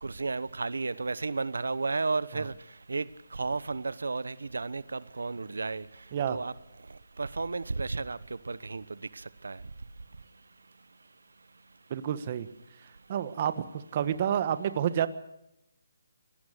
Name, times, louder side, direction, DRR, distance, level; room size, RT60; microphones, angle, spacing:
voice 1, 0.0-2.5 2.9-3.0 3.3-5.8 6.3-6.5 7.2-8.2 8.5-8.8 9.4-9.6, right 3 dB, 85° right, 18 dB, 0.9 m, -32 dB
voice 2, 11.9-12.5 13.1-13.6 13.9-15.1, right 9 dB, 35° right, 13 dB, 1.3 m, -29 dB
23.0 x 17.5 x 6.6 m, 0.83 s
hypercardioid pair, 165°, 0 cm